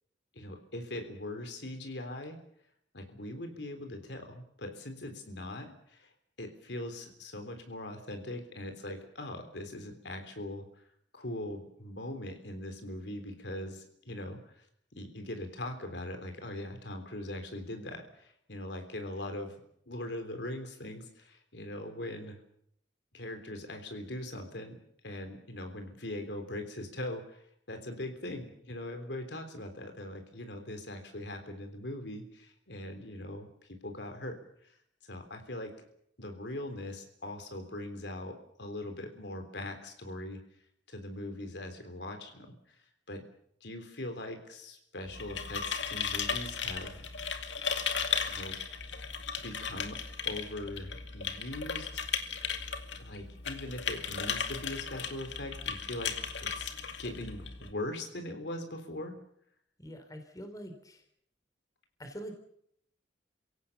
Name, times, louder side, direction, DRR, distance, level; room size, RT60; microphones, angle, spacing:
voice 1, 0.3-2.4 2.9-6.1 6.4-10.7 11.1-14.7 14.9-19.6 19.9-22.4 23.1-24.8 25.0-34.4 34.6-34.8 35.0-35.7 36.2-40.4 40.9-42.8 43.1-43.2 43.6-47.0 48.0-48.6 49.4-52.1 53.0-56.1 56.4-56.7 57.0-59.2, left 1 dB, 70° left, 6 dB, 3.5 m, -41 dB
sound 1, 45.0-57.7, left 6 dB, 85° left, 2.3 m, -36 dB
voice 2, 59.8-61.0 62.0-62.4, equal, 20° left, 6 dB, 3.7 m, -44 dB
28.5 x 17.0 x 7.2 m, 0.72 s
head